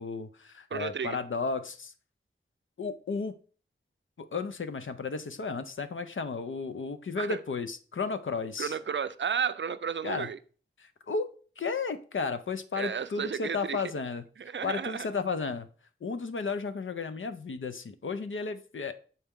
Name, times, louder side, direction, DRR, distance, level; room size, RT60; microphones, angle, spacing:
voice 1, 0.0-1.9 2.8-3.3 4.2-8.7 10.0-10.3 10.8-11.3 11.6-14.3 14.6-15.7 16.0-18.9, left 4 dB, 70° left, 0.6 m, -33 dB
voice 2, 0.7-1.2 7.2-7.4 8.6-10.4 12.8-13.8 14.4-15.1, right 7 dB, 65° right, 0.4 m, -33 dB
7.0 x 4.3 x 3.6 m
wide cardioid pair, 55°, 21 cm